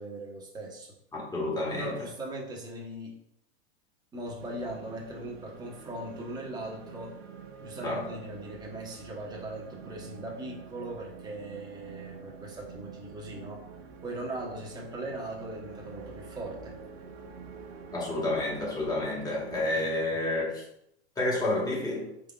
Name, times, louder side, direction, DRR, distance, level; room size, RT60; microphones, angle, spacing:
voice 1, 0.0-0.9 1.8-3.1 4.1-7.1 7.6-13.6 14.0-16.7, right 1 dB, 15° right, -3 dB, 1.0 m, -39 dB
voice 2, 1.1-1.9 7.8-8.1 17.9-20.6 21.2-22.1, left 2 dB, 10° left, -4 dB, 1.3 m, -30 dB
sound 1, 4.4-19.6, right 6 dB, 70° right, 0.7 m, -47 dB
4.5 x 3.7 x 2.3 m, 0.77 s
hypercardioid pair, 120°, 32 cm